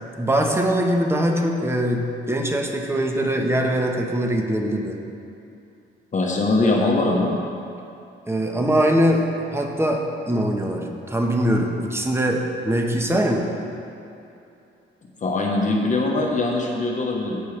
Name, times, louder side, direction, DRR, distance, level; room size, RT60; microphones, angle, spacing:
voice 1, 0.2-5.0 8.3-13.5, equal, 10° right, 2 dB, 1.1 m, -22 dB
voice 2, 6.1-7.4 15.2-17.4, left 2 dB, 40° left, -1 dB, 1.1 m, -22 dB
16.0 x 5.4 x 3.3 m, 2.7 s
cardioid pair, 90°, 20 cm